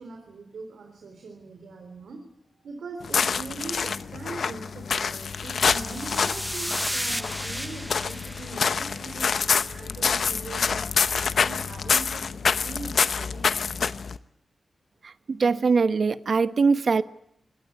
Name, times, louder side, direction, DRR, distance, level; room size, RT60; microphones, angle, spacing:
voice 1, 0.0-2.2 2.6-13.6, right 3 dB, 85° right, 4 dB, 3.8 m, -41 dB
sound 1, 3.0-14.2, left 6 dB, 75° left, 0.8 m, -27 dB
sound 2, 5.2-9.7, equal, 5° left, 1.0 m, -34 dB
voice 2, 15.0-17.0, right 4 dB, 65° right, 13 dB, 1.0 m, -22 dB
24.5 x 18.5 x 8.3 m, 0.75 s
cardioid pair, 60°, 0 cm